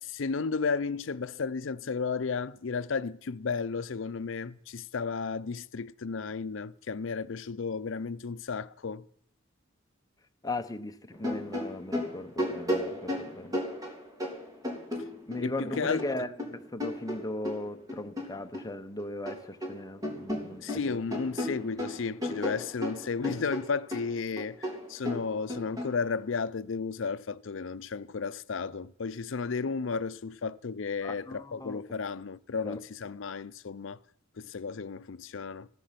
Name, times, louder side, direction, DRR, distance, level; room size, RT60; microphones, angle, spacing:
voice 1, 0.0-9.1 15.4-16.3 20.6-34.0 34.4-35.7, left 5 dB, 70° left, 0.5 m, -33 dB
voice 2, 10.4-13.6 15.3-21.0 31.0-31.8 32.6-32.8, left 2 dB, 20° left, 0.9 m, -37 dB
sound 1, 11.1-15.4 15.7-18.7 19.0-19.8 20.0-25.9, left 1 dB, 20° right, 3.2 m, -34 dB
15.0 x 13.0 x 5.8 m
head